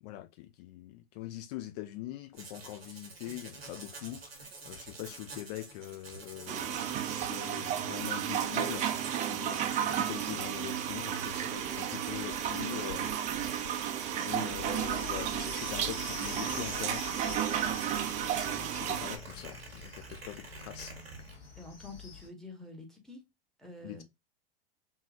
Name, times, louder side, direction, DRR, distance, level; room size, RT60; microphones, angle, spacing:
voice 1, 0.0-13.1 14.1-17.9 18.2-21.0 23.8-24.0, left 14 dB, 45° left, 0.4 m, -43 dB
sound 1, 2.3-21.4, right 2 dB, 90° right, 1.1 m, -49 dB
sound 2, 6.5-19.2, right 10 dB, 25° right, 0.4 m, -33 dB
sound 3, 14.5-22.3, left 4 dB, 70° left, 1.7 m, -45 dB
voice 2, 21.6-23.2 23.6-24.0, left 3 dB, ahead, 0.8 m, -47 dB
3.6 x 2.0 x 2.5 m
hypercardioid pair, 95°, 30 cm